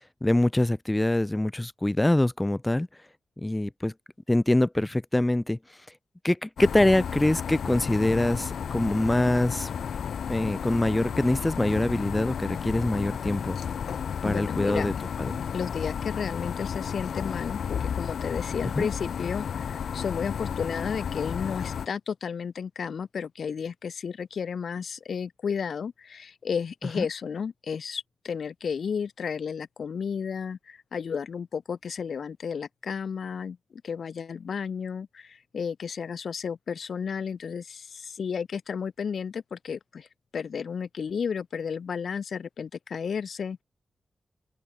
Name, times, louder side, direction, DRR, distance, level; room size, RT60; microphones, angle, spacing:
voice 1, 0.2-2.9 3.4-3.9 4.3-5.6 6.2-9.7 10.3-13.6 14.2-14.9 15.2-15.3 18.7-18.9 27.0-27.1, left 1 dB, 10° left, 1.0 m, -24 dB
sound 1, 6.6-21.9, left 7 dB, 85° left, 0.7 m, -32 dB
voice 2, 14.2-14.9 15.5-17.6 18.0-33.6 33.8-40.1 40.3-43.6, left 6 dB, 60° left, 1.2 m, -32 dB
open air
wide cardioid pair, 165°, 0 cm